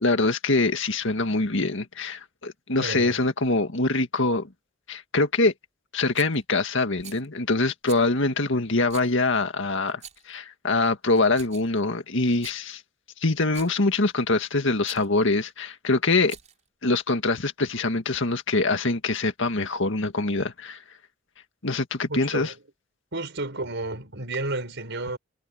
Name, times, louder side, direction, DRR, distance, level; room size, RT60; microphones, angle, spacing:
voice 1, 0.0-4.5 4.9-5.5 5.9-12.8 13.2-16.4 16.8-20.8 21.6-22.5, left 3 dB, 65° left, 1.9 m, -24 dB
voice 2, 2.8-3.2 22.1-22.5 23.1-25.2, right 2 dB, 65° right, 6.3 m, -31 dB
Rattle, 6.1-6.4 7.0-7.3 7.9-8.1 8.9-9.1 9.9-10.3 11.1-11.8 12.3-12.6 13.4-13.8 14.8-15.1 16.1-16.7, right 8 dB, 35° right, 5.8 m, -45 dB
head